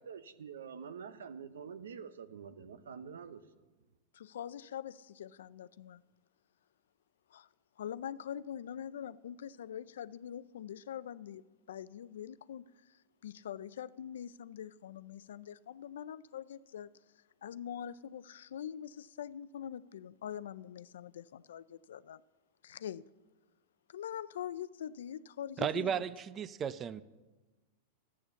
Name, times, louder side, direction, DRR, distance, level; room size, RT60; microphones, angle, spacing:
voice 1, 0.0-3.5, right 6 dB, 90° right, 0.8 m, -46 dB
voice 2, 4.1-6.0 7.3-7.5 7.8-16.9 17.4-22.2 22.6-23.0 23.9-26.0, left 9 dB, 80° left, 0.4 m, -44 dB
voice 3, 25.6-27.0, right 8 dB, 30° right, 0.5 m, -34 dB
12.0 x 8.5 x 7.0 m
hypercardioid pair, 120°, 0 cm